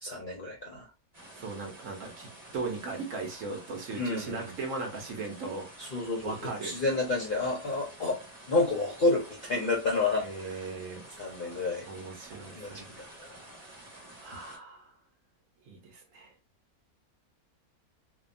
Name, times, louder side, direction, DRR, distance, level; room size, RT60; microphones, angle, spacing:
voice 1, 0.0-0.9 3.9-4.5 5.8-8.2 8.5-10.5 11.2-11.9 12.5-13.5, left 3 dB, 55° left, 0.6 m, -30 dB
sound 1, 1.1-14.6, right 1 dB, 20° right, 1.3 m, -50 dB
voice 2, 1.3-5.7 6.2-6.8 10.2-11.1 11.9-12.9 14.2-14.9 15.7-16.3, right 3 dB, 65° right, 1.1 m, -38 dB
2.7 x 2.2 x 2.5 m
omnidirectional pair, 1.6 m